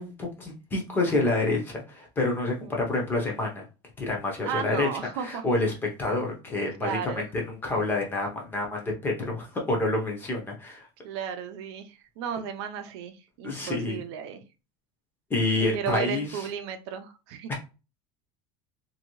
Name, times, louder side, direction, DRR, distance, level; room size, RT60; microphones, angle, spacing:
voice 1, 0.0-3.6 4.0-4.9 5.2-10.9 13.4-14.0 15.3-16.5 17.5-17.6, left 2 dB, 15° left, 1 dB, 0.7 m, -28 dB
voice 2, 4.4-5.4 6.8-7.3 11.0-14.4 15.6-17.5, right 7 dB, 80° right, 7 dB, 0.6 m, -34 dB
2.7 x 2.6 x 3.0 m, 0.30 s
cardioid pair, 175°, 13 cm